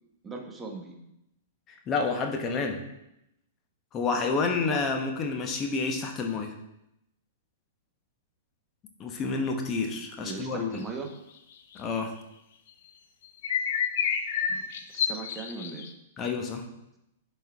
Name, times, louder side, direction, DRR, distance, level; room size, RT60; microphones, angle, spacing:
voice 1, 0.2-0.9 10.2-11.1 14.5-15.9, right 4 dB, 15° right, 2 dB, 1.2 m, -39 dB
voice 2, 1.9-2.8 3.9-6.5 9.0-10.8 11.7-12.1 16.2-16.7, left 4 dB, 25° left, 3 dB, 1.2 m, -29 dB
sound 1, 13.3-15.9, left 7 dB, 50° left, 0.6 m, -29 dB
10.5 x 4.6 x 3.6 m, 0.84 s
figure-of-eight pair, 105°, 0 cm